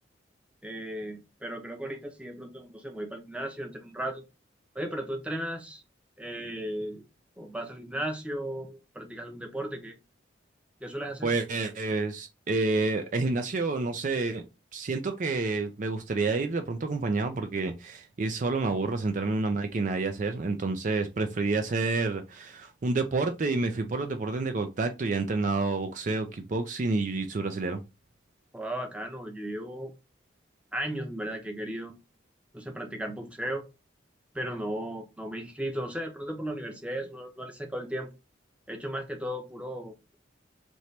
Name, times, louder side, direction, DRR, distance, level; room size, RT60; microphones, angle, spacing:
voice 1, 0.6-4.2 4.7-5.8 6.2-7.1 7.4-10.0 10.8-11.3 28.5-29.9 30.7-31.9 32.5-33.7 34.3-38.1 38.7-40.2, right 1 dB, 5° right, 0.7 m, -35 dB
voice 2, 11.2-14.4 14.7-27.8, right 3 dB, 40° right, 0.4 m, -29 dB
4.3 x 2.9 x 3.2 m
head